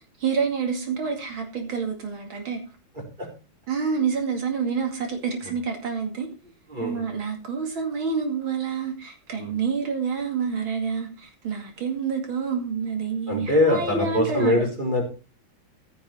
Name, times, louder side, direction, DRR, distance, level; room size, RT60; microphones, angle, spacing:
voice 1, 0.2-2.6 3.7-6.3 6.8-14.7, right 6 dB, 80° right, 3.2 m, -28 dB
voice 2, 6.7-7.0 9.4-9.5 13.3-15.0, left 1 dB, 20° right, 4.3 m, -23 dB
15.5 x 6.7 x 4.4 m
omnidirectional pair, 2.2 m